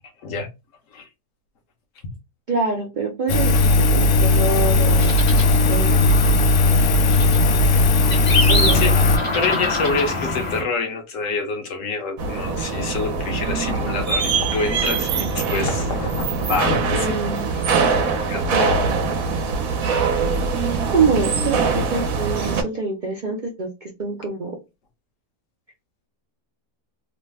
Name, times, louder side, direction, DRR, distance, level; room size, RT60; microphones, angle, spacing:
voice 1, 2.5-5.9 8.5-8.8 16.9-17.4 18.5-18.8 20.9-24.6, right 4 dB, 55° right, 0.5 m, -25 dB
Engine, 3.3-9.2, left 2 dB, 90° left, 1.1 m, -17 dB
sound 1, 4.5-10.6, left 2 dB, 30° left, 0.7 m, -26 dB
voice 2, 9.2-17.2 17.5-17.6 17.9-18.0 18.3-18.5, left 4 dB, 65° left, 1.1 m, -26 dB
sound 2, 12.2-22.6, right 4 dB, 70° right, 1.0 m, -23 dB
3.1 x 2.1 x 3.3 m
omnidirectional pair, 1.6 m